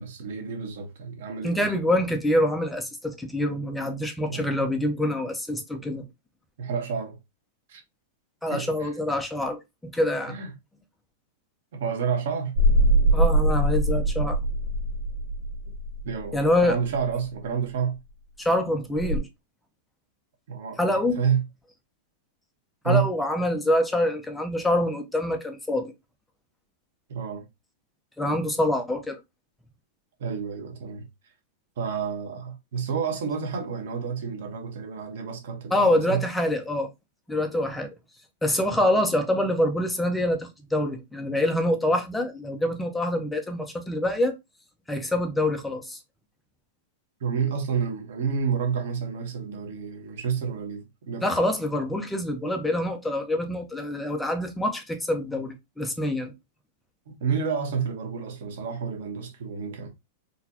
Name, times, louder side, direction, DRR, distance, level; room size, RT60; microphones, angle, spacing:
voice 1, 0.0-1.7 4.3-4.5 6.6-7.2 7.7-7.8 8.5-8.9 10.3-10.5 11.7-12.5 16.0-18.0 20.5-21.4 22.8-23.1 27.1-27.4 30.2-31.1 31.8-36.2 47.2-51.3 57.1-59.9, right 6 dB, 65° right, 1.0 m, -29 dB
voice 2, 1.4-6.0 8.4-9.6 9.9-10.3 13.1-14.4 16.3-16.8 18.4-19.3 20.8-21.2 22.8-25.9 28.2-29.2 35.7-36.9 37.3-37.9 38.4-44.4 44.9-46.0 51.2-56.3, left 1 dB, 5° left, 0.4 m, -25 dB
sound 1, 12.6-17.0 19.0-19.2, right 1 dB, 90° right, 1.2 m, -22 dB
3.9 x 2.1 x 2.7 m
supercardioid pair, 175°, 0 cm